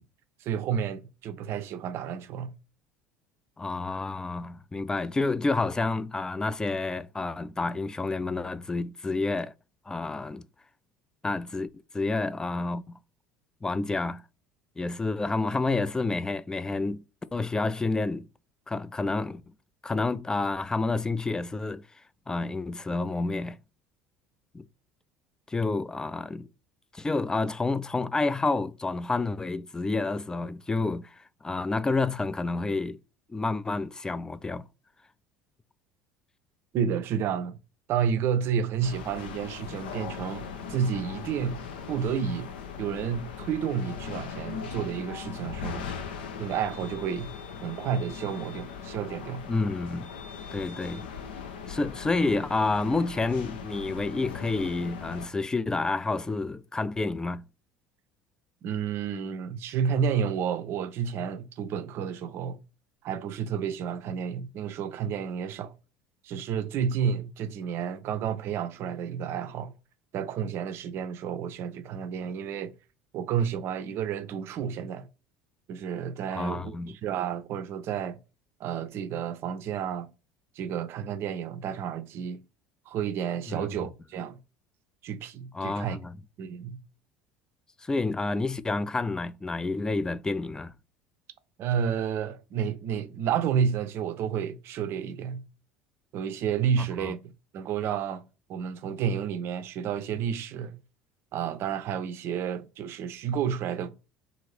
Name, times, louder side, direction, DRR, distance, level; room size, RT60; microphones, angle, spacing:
voice 1, 0.4-2.5 36.7-37.6 37.9-41.6 41.9-42.5 42.8-45.9 46.4-47.3 47.6-49.4 58.6-62.6 63.0-65.7 66.2-69.7 70.1-72.7 73.1-75.1 75.7-76.8 77.0-78.2 78.6-80.1 80.6-82.4 82.9-84.4 85.0-86.0 86.4-86.8 91.6-95.4 96.1-97.2 97.5-98.2 98.5-100.7 101.3-103.9, right 7 dB, 55° right, 0.5 m, -30 dB
voice 2, 3.6-9.5 9.9-10.5 11.2-11.7 11.9-13.0 13.6-14.2 14.8-17.0 17.3-18.3 18.7-19.4 19.8-21.9 22.3-23.6 24.5-24.6 25.5-26.5 26.9-33.0 33.3-34.7 49.5-50.1 50.5-51.0 51.7-57.4 76.3-77.0 83.5-83.8 85.5-86.2 87.8-90.7 97.0-97.1, left 3 dB, 15° left, 0.3 m, -29 dB
sound 1, 38.8-55.3, left 6 dB, 80° left, 0.5 m, -39 dB
2.6 x 2.5 x 3.2 m
hypercardioid pair, 70°, 5 cm